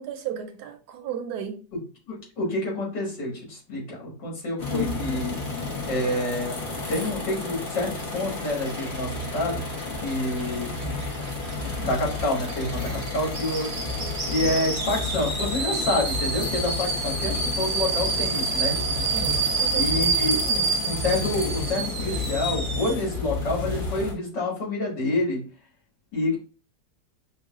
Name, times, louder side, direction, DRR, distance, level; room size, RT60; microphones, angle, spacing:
voice 1, 0.0-1.6 19.1-20.3, right 8 dB, 70° right, 1.0 m, -34 dB
voice 2, 2.1-5.3 5.8-6.6 6.9-9.6 10.0-10.7 11.8-13.7 14.3-18.8 19.7-25.4 26.1-26.4, left 2 dB, 75° left, 2.5 m, -28 dB
sound 1, 4.6-24.1, left 3 dB, 45° left, 0.6 m, -32 dB
sound 2, 6.8-23.0, right 4 dB, 50° right, 0.7 m, -30 dB
6.1 x 2.2 x 2.4 m
omnidirectional pair, 1.9 m